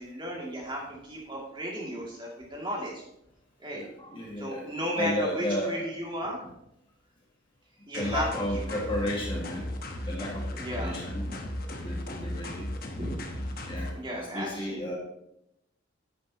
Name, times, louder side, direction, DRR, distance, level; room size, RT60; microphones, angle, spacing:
voice 1, 0.0-3.0 3.6-3.8 4.4-6.5 7.8-8.2 8.7-8.8 10.6-10.9 11.3-11.4 12.9-13.5 13.9-14.8, equal, 25° right, -3 dB, 2.5 m, -35 dB
voice 2, 3.7-5.9 8.0-9.7 10.1-11.3 11.7-12.7 13.7-15.0, left 1 dB, 25° left, -3 dB, 1.9 m, -33 dB
sound 1, 7.9-13.9, left 1 dB, 50° left, 1.2 m, -35 dB
10.5 x 9.1 x 2.9 m, 0.81 s
head